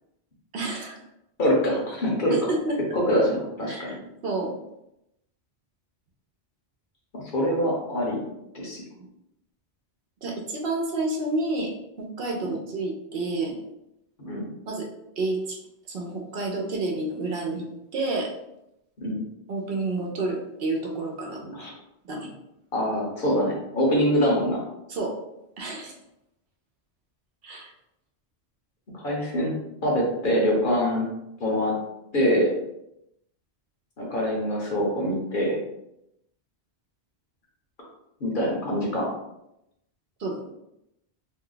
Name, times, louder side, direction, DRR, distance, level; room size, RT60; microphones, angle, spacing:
voice 1, 0.5-1.0 2.3-2.8 3.7-4.5 10.2-11.7 12.0-13.5 14.7-14.9 15.2-15.6 15.9-17.7 17.9-18.3 19.5-21.4 22.1-22.3 24.9-25.1 25.6-25.9 27.4-27.7 40.2-40.4, right 2 dB, 65° right, 0 dB, 0.8 m, -29 dB
voice 2, 1.4-2.5 2.9-3.9 7.1-8.2 8.5-8.8 14.3-14.5 19.0-19.2 21.4-21.7 22.7-24.6 28.9-29.6 29.8-31.1 31.4-31.8 32.1-32.5 34.0-35.6 38.2-39.1, equal, 50° left, -2 dB, 1.0 m, -24 dB
2.7 x 2.2 x 3.8 m, 0.85 s
omnidirectional pair, 1.1 m